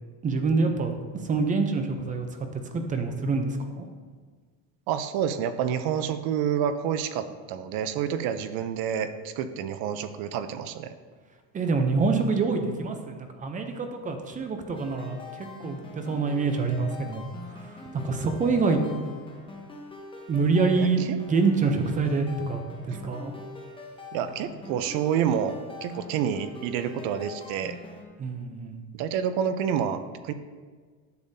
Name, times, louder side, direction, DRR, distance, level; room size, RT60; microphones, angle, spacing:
voice 1, 0.2-0.9 1.2-3.9 11.5-18.8 20.3-23.3 28.2-28.8, right 4 dB, 20° right, 6 dB, 0.5 m, -26 dB
voice 2, 4.9-10.9 20.8-21.2 24.1-27.8 28.9-30.3, right 8 dB, 60° right, 11 dB, 0.7 m, -28 dB
sound 1, 14.7-28.0, left 3 dB, 10° left, 1.0 m, -43 dB
10.5 x 7.0 x 2.7 m, 1.5 s
cardioid pair, 155°, 42 cm